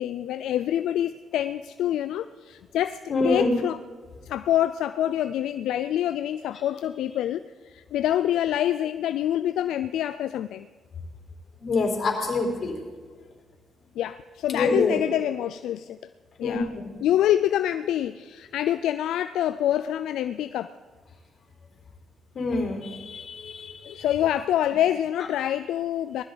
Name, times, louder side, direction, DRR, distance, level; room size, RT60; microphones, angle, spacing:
voice 1, 0.0-3.0 3.2-3.8 4.3-10.7 14.0-16.0 16.4-16.7 17.0-20.7 23.8-26.2, left 11 dB, 80° left, 11 dB, 0.3 m, -26 dB
voice 2, 3.1-3.6 11.6-12.8 14.5-15.0 16.4-17.0 22.3-24.0, left 3 dB, 55° left, 2 dB, 4.1 m, -26 dB
20.0 x 13.5 x 4.0 m, 1.5 s
cardioid pair, 80°, 0 cm